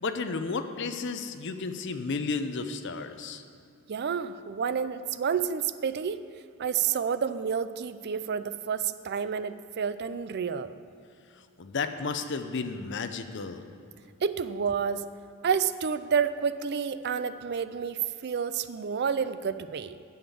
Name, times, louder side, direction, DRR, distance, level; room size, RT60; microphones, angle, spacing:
voice 1, 0.0-3.4 11.6-13.6, left 4 dB, 60° left, 9 dB, 0.7 m, -32 dB
voice 2, 3.9-6.2 6.6-10.7 14.2-15.0 15.4-20.0, right 6 dB, 55° right, 13 dB, 0.4 m, -29 dB
9.3 x 7.2 x 8.5 m, 2.5 s
head